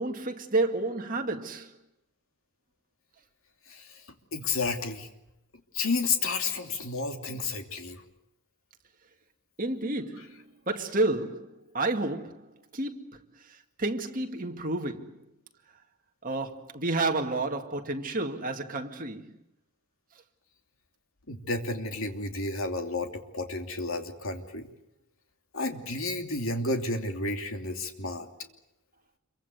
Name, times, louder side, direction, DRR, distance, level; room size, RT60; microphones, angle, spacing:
voice 1, 0.0-1.7 9.6-15.3 16.2-19.4, right 2 dB, 40° right, 2.1 m, -31 dB
voice 2, 3.7-4.0 4.3-5.1 5.7-8.0 21.3-24.7 25.5-28.3, left 3 dB, 65° left, 2.9 m, -31 dB
27.5 x 23.5 x 8.0 m
head